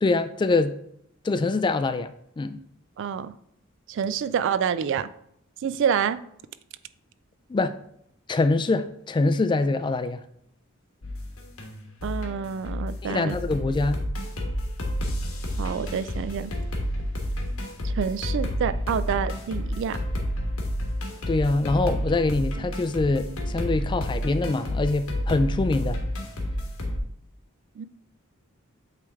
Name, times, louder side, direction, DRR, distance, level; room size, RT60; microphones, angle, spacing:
voice 1, 0.0-0.7 1.2-2.1 2.4-2.6 7.5-7.7 8.3-10.2 13.0-14.0 21.3-26.0, left 3 dB, 20° left, 0.3 m, -24 dB
voice 2, 3.0-3.3 3.9-5.1 5.6-6.2 12.0-13.4 15.6-16.5 17.8-20.0 27.8-27.9, right 7 dB, 60° right, 0.3 m, -27 dB
sound 1, 11.0-27.0, equal, 85° left, 1.3 m, -30 dB
8.2 x 3.3 x 3.5 m
head